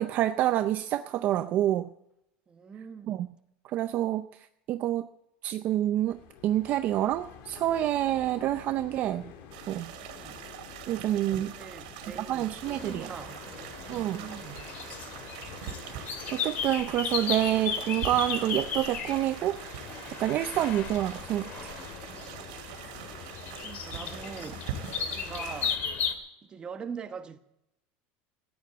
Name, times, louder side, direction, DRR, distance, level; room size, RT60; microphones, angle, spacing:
voice 1, 0.0-1.9 3.1-3.3 3.7-5.1 5.4-9.3 9.7-9.9 10.9-11.5 12.1-13.1 13.9-14.3 16.0-19.9 20.2-21.7, right 13 dB, 40° right, 0.5 m, -28 dB
voice 2, 2.5-3.2 10.1-10.5 11.6-13.4 13.9-14.7 23.6-24.6 25.1-25.8 26.4-27.4, right 6 dB, 20° right, 1.1 m, -42 dB
sound 1, 6.1-26.0, left 8 dB, 55° left, 2.0 m, -50 dB
sound 2, 9.5-25.8, right 9 dB, 75° right, 2.8 m, -43 dB
sound 3, 12.6-26.1, left 6 dB, 40° left, 2.3 m, -36 dB
15.0 x 9.4 x 8.5 m
supercardioid pair, 150°, 4 cm